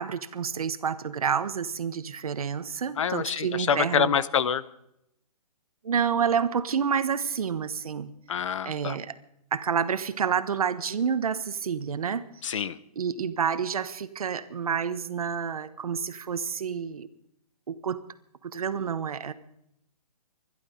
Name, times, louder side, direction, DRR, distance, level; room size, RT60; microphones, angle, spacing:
voice 1, 0.0-4.2 5.8-8.1 8.6-9.2 9.5-12.6 13.0-17.1 17.7-18.0 18.4-19.3, right 7 dB, 70° right, 13 dB, 1.3 m, -29 dB
voice 2, 3.0-4.6 8.3-9.0 12.4-12.8, left 7 dB, 55° left, 17 dB, 0.8 m, -26 dB
23.0 x 11.5 x 5.2 m, 0.78 s
hypercardioid pair, 155°, 20 cm